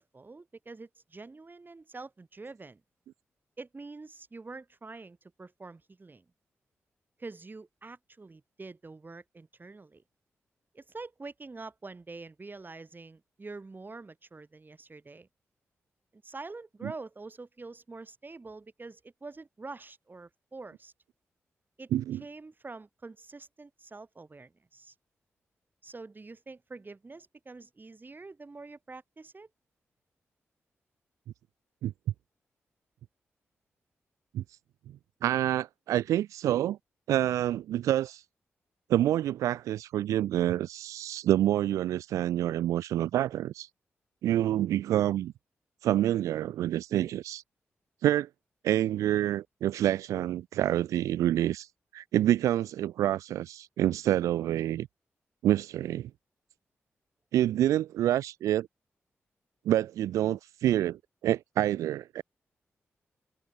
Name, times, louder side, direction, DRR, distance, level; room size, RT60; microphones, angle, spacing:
voice 1, 0.0-2.8 3.6-6.3 7.2-10.0 10.7-15.3 16.1-20.9 21.8-21.9 22.2-24.9 25.8-29.5, right 3 dB, 40° right, 5.1 m, -46 dB
voice 2, 21.9-22.2 31.8-31.9 34.3-34.4 35.2-36.8 37.1-38.2 38.9-43.7 44.2-45.3 45.8-47.4 48.0-48.3 48.6-54.9 55.4-56.1 57.3-58.7 59.6-62.2, right 12 dB, 90° right, 0.9 m, -27 dB
supercardioid pair, 40°, 5 cm